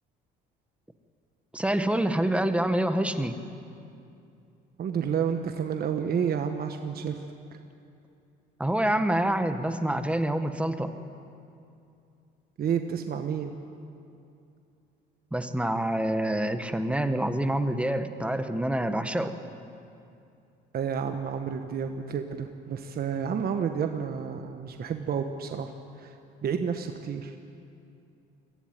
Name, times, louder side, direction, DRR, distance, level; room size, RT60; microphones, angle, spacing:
voice 1, 1.5-3.4 8.6-10.9 15.3-19.3, right 1 dB, 5° right, 9 dB, 1.5 m, -26 dB
voice 2, 4.8-7.2 12.6-13.5 20.7-25.7 26.0-26.1 26.4-27.3, right 7 dB, 50° right, 6 dB, 1.3 m, -30 dB
22.5 x 15.0 x 9.1 m, 2.6 s
supercardioid pair, 80°, 20 cm